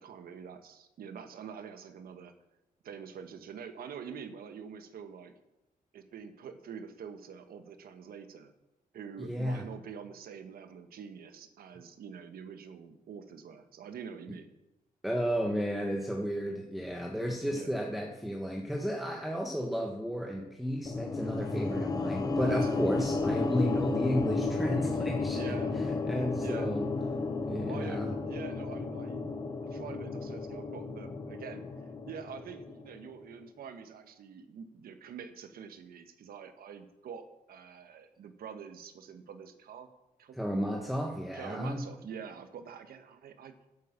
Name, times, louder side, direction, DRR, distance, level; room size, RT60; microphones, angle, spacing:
voice 1, 0.0-2.3 2.8-5.3 5.9-8.5 8.9-14.5 17.5-17.7 22.3-22.7 25.3-25.7 26.4-26.7 27.6-29.3 29.7-31.7 32.1-39.9 40.2-40.4 41.3-43.5, right 7 dB, 80° right, 9 dB, 1.3 m, -45 dB
voice 2, 9.2-9.6 15.0-26.9 27.4-28.1 40.3-41.8, equal, ahead, 1 dB, 1.1 m, -33 dB
sound 1, 20.9-33.1, left 3 dB, 25° left, 0.9 m, -33 dB
10.5 x 8.1 x 7.3 m, 0.95 s
wide cardioid pair, 155°, 15 cm